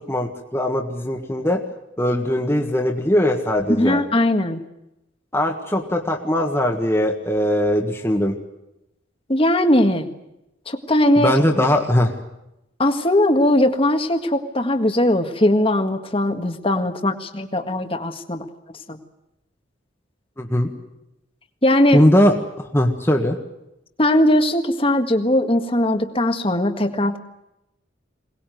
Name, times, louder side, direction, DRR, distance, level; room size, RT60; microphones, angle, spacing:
voice 1, 0.1-1.6 2.0-4.0 5.3-8.4 11.2-12.2 20.4-20.7 21.9-23.4, left 1 dB, 15° left, 1 dB, 1.7 m, -20 dB
voice 2, 3.7-4.6 9.3-10.1 10.7-11.3 12.8-18.5 18.9-19.0 21.6-22.0 24.0-27.2, left 1 dB, 30° left, 7 dB, 1.7 m, -19 dB
22.5 x 19.0 x 9.3 m, 0.88 s
head